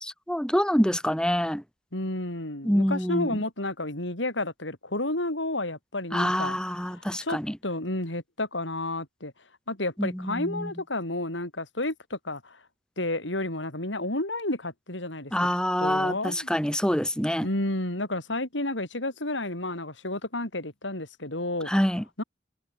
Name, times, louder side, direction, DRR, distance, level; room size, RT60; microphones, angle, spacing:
voice 1, 0.0-1.6 2.6-3.3 6.1-7.5 10.0-10.7 15.3-17.5 21.7-22.0, equal, 5° left, 3.1 m, -26 dB
voice 2, 1.9-6.6 6.8-9.3 9.7-12.6 13.0-15.3 15.8-16.5 17.4-21.7 22.2-22.3, left 2 dB, 85° left, 7.6 m, -31 dB
head